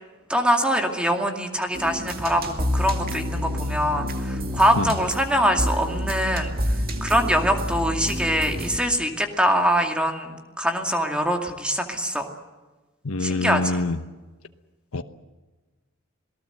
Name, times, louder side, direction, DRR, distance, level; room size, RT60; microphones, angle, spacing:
voice 1, 0.3-12.3 13.2-13.8, equal, 5° right, 2.2 m, -23 dB
sound 1, 1.7-8.8, equal, 45° right, 2.3 m, -28 dB
voice 2, 13.0-14.0 14.9-15.0, left 3 dB, 90° left, 1.1 m, -25 dB
27.5 x 18.5 x 8.0 m
head